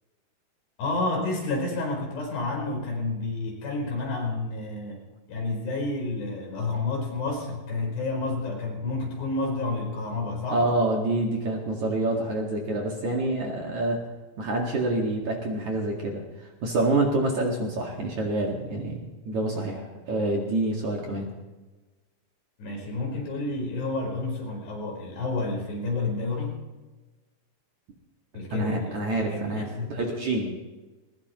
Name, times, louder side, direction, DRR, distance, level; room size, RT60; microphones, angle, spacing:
voice 1, 0.8-5.0 5.3-10.6 22.6-26.6 28.3-29.0 29.3-30.0, left 2 dB, 70° left, -1 dB, 6.7 m, -30 dB
voice 2, 10.5-14.0 14.4-19.0 19.2-21.3 28.5-30.5, right 2 dB, 50° right, -1 dB, 2.8 m, -27 dB
21.0 x 20.0 x 3.1 m, 1.2 s
omnidirectional pair, 5.0 m